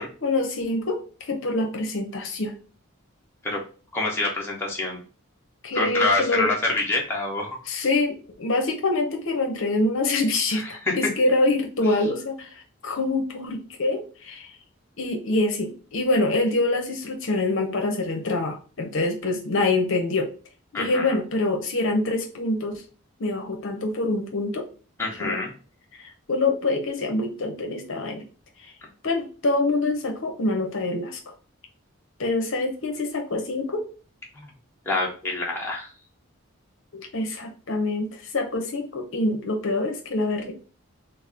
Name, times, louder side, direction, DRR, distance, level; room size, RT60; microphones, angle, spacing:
voice 1, 0.0-2.5 5.6-6.5 7.7-14.5 15.0-20.3 20.7-22.8 23.2-24.7 25.2-25.4 26.0-28.2 28.6-28.7 29.0-31.2 32.2-33.8 36.9-40.5, left 2 dB, 65° left, 3 dB, 0.7 m, -25 dB
voice 2, 3.9-5.0 5.7-7.6 10.5-10.9 20.7-21.2 25.0-25.5 34.4-34.5 34.8-35.9, left 2 dB, 10° left, -3 dB, 0.9 m, -26 dB
4.1 x 2.0 x 3.5 m, 0.37 s
head